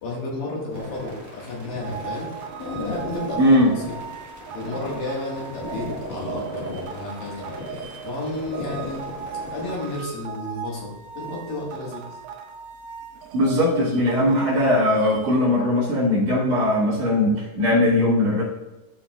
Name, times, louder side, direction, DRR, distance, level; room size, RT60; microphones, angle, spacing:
voice 1, 0.0-2.3 2.6-3.4 4.5-7.6 8.0-9.1 9.5-12.0, left 2 dB, 85° left, -3 dB, 3.5 m, -32 dB
sound 1, 0.7-10.0, equal, 30° right, 1.1 m, -36 dB
sound 2, 1.8-15.4, right 7 dB, 90° right, 2.4 m, -38 dB
voice 2, 3.4-3.7 13.3-18.4, left 1 dB, 55° right, -11 dB, 2.9 m, -19 dB
12.5 x 4.9 x 2.4 m, 1.1 s
omnidirectional pair, 3.9 m